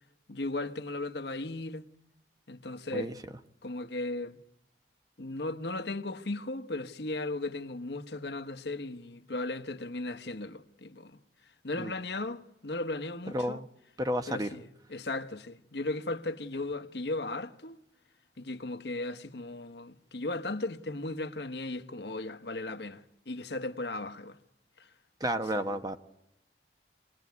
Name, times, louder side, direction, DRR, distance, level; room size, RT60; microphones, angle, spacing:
voice 1, 0.3-1.9 2.5-3.1 3.6-4.4 5.2-11.2 11.6-13.6 14.3-17.8 18.4-24.4 24.8-24.9 25.3-25.8, left 2 dB, 70° left, 1.2 m, -36 dB
voice 2, 13.3-13.7 14.0-14.5 25.2-26.0, equal, 20° right, 1.0 m, -31 dB
26.5 x 19.5 x 9.5 m
head